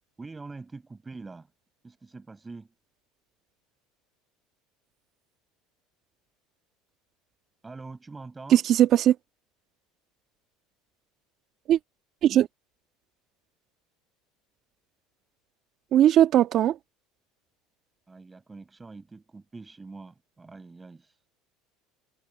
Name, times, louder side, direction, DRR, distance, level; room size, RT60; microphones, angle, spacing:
voice 1, 0.2-1.5 1.8-2.7 7.6-8.6 18.1-21.3, right 3 dB, 15° right, 7.3 m, -44 dB
voice 2, 8.5-9.2 11.7-11.8 12.2-12.5 15.9-16.8, right 11 dB, 50° right, 2.0 m, -19 dB
supercardioid pair, 100°, 0 cm